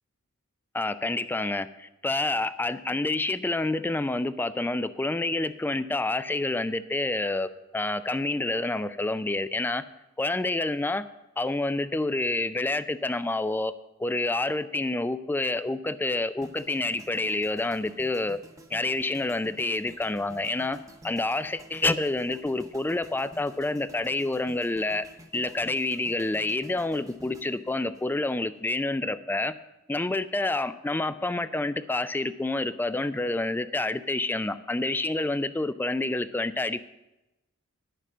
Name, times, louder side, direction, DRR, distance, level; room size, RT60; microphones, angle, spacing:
voice 1, 0.7-9.8 10.2-11.0 11.4-13.7 14.0-18.4 18.7-20.8 21.0-25.1 25.3-29.5 29.9-36.8, left 2 dB, 10° left, 13 dB, 0.3 m, -28 dB
sound 1, 16.4-28.6 28.9-29.2, right 1 dB, 15° right, 0.9 m, -51 dB
10.5 x 6.7 x 7.2 m, 0.99 s
head